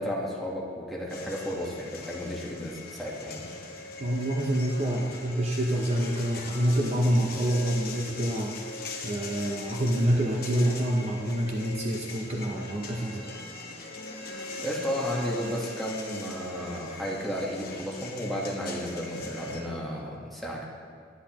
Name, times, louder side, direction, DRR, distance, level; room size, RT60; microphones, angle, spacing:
voice 1, 0.0-3.4 14.6-20.7, equal, ahead, -5 dB, 1.2 m, -33 dB
sound 1, 1.1-19.6, left 3 dB, 50° left, 1.0 m, -40 dB
voice 2, 4.0-8.6 9.0-13.2, right 1 dB, 35° right, 0 dB, 0.6 m, -27 dB
10.0 x 10.0 x 3.0 m, 2.1 s
head